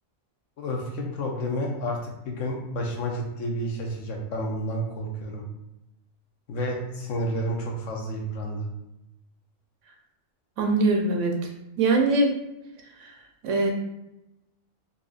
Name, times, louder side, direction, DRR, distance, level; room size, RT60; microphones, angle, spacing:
voice 1, 0.6-5.4 6.5-8.7, equal, 75° left, 0 dB, 1.1 m, -30 dB
voice 2, 10.6-11.3 11.8-12.3 13.0-13.1 13.4-13.7, right 2 dB, 70° right, 1 dB, 0.9 m, -22 dB
4.0 x 2.5 x 2.4 m, 0.90 s
omnidirectional pair, 1.4 m